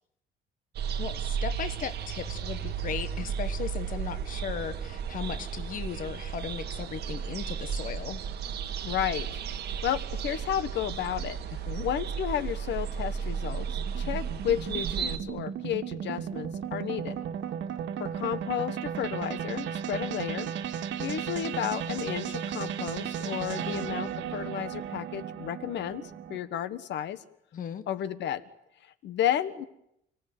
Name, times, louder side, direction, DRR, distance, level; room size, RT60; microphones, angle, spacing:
sound 1, 0.7-15.2, right 7 dB, 60° right, 2.0 m, -34 dB
voice 1, 1.0-8.2 11.7-11.9 27.5-27.8, left 7 dB, 45° left, 10 dB, 1.3 m, -37 dB
voice 2, 8.8-9.3 9.8-11.4 11.8-13.7 14.0-17.2 18.0-20.5 21.0-26.0 26.3-27.2 27.9-28.4 28.8-29.7, left 10 dB, 70° left, 13 dB, 1.5 m, -32 dB
sound 2, 12.2-26.4, right 8 dB, 80° right, 2.2 m, -35 dB
30.0 x 18.0 x 9.5 m, 0.77 s
cardioid pair, 170°, 19 cm